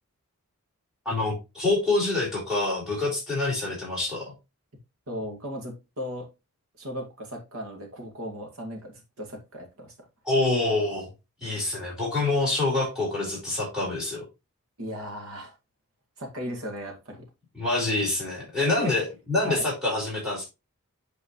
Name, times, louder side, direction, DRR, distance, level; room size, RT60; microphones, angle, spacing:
voice 1, 1.0-4.3 10.2-11.1 11.4-14.2 17.5-20.5, left 2 dB, 5° right, -5 dB, 4.5 m, -26 dB
voice 2, 5.1-6.3 6.8-9.9 14.8-15.5 16.2-17.3 18.6-18.9 19.4-19.6, equal, 70° right, 3 dB, 2.2 m, -36 dB
8.1 x 4.9 x 3.1 m, 0.25 s
head